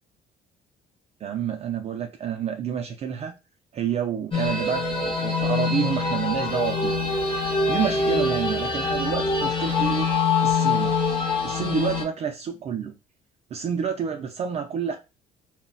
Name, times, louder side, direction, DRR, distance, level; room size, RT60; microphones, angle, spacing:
voice 1, 1.2-3.3 3.7-7.1 7.7-10.1 10.4-10.9 11.4-12.9 13.5-15.0, right 7 dB, 40° right, 0.4 m, -29 dB
sound 1, 4.3-12.0, left 4 dB, 30° left, 0.8 m, -24 dB
3.7 x 2.1 x 2.3 m
cardioid pair, 110°, 17 cm